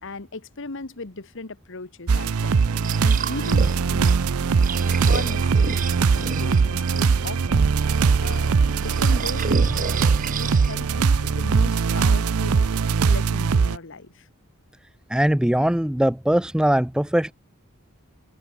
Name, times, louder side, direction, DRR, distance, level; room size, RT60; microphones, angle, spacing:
voice 1, 0.0-2.6 3.0-4.2 4.7-7.7 8.2-10.0 10.3-12.7 13.1-14.2, left 3 dB, 60° left, 1.3 m, -37 dB
sound 1, 2.1-13.8, right 5 dB, 85° right, 0.5 m, -21 dB
sound 2, 2.6-11.1, right 4 dB, 40° right, 2.9 m, -33 dB
voice 2, 15.1-17.3, right 1 dB, 5° right, 0.4 m, -21 dB
open air
head